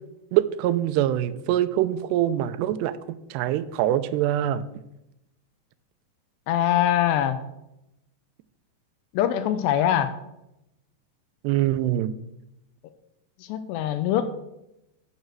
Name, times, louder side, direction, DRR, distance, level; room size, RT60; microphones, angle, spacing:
voice 1, 0.3-4.6 11.4-12.1, right 12 dB, 85° right, 13 dB, 2.6 m, -24 dB
voice 2, 6.5-7.4 9.1-10.1 13.5-14.3, left 10 dB, 85° left, 10 dB, 2.7 m, -23 dB
9.3 x 6.6 x 7.6 m, 0.88 s
omnidirectional pair, 5.0 m